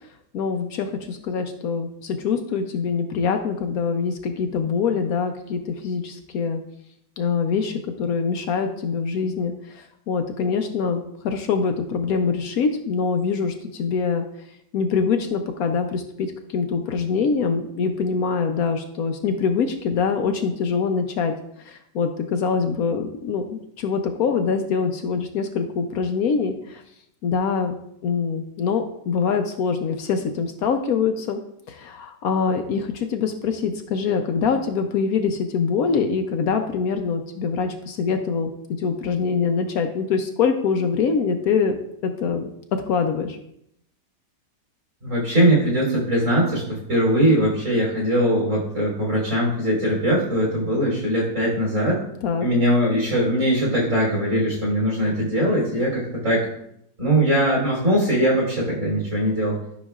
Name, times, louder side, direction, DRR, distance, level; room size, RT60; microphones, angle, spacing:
voice 1, 0.3-6.6 7.2-14.3 14.7-21.3 21.6-26.8 27.2-27.8 28.0-31.4 31.7-38.5 38.8-41.7 42.0-43.4 52.2-52.5, left 5 dB, 65° left, 6 dB, 1.0 m, -24 dB
voice 2, 45.0-52.0 52.4-56.5 57.0-59.6, equal, 45° right, -4 dB, 3.8 m, -21 dB
12.0 x 6.1 x 2.4 m, 0.74 s
omnidirectional pair, 1.9 m